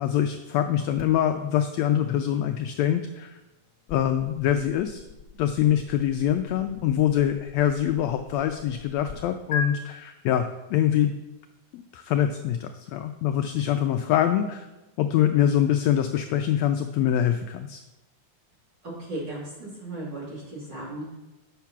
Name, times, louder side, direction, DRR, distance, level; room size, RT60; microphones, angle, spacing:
voice 1, 0.0-3.4 3.9-5.0 5.4-11.1 11.7-14.7 15.0-17.8, left 10 dB, 85° left, 7 dB, 1.5 m, -24 dB
sound 1, 1.0-9.1 9.5-9.7, left 4 dB, 50° left, 0.8 m, -41 dB
voice 2, 18.8-21.2, right 1 dB, 35° right, -5 dB, 2.8 m, -36 dB
8.2 x 5.7 x 5.9 m, 1.0 s
omnidirectional pair, 3.6 m